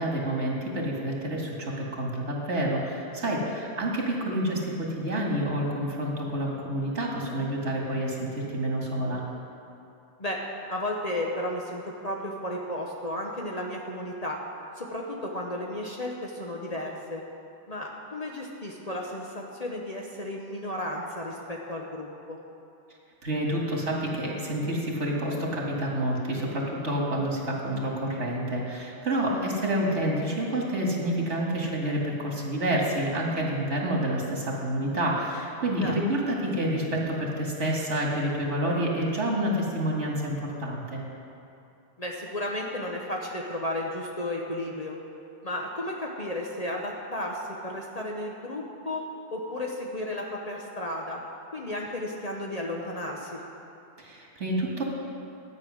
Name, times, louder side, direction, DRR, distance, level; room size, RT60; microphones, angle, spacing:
voice 1, 0.0-9.2 23.2-41.0 54.0-54.8, right 1 dB, 85° right, -2 dB, 2.3 m, -28 dB
voice 2, 10.7-14.4 14.8-17.2 17.7-22.4 29.3-29.6 35.8-36.0 42.0-45.0 45.4-49.0 49.3-51.2 51.5-53.4, left 1 dB, 35° left, -1 dB, 1.0 m, -33 dB
12.0 x 9.0 x 6.3 m, 2.7 s
omnidirectional pair, 1.2 m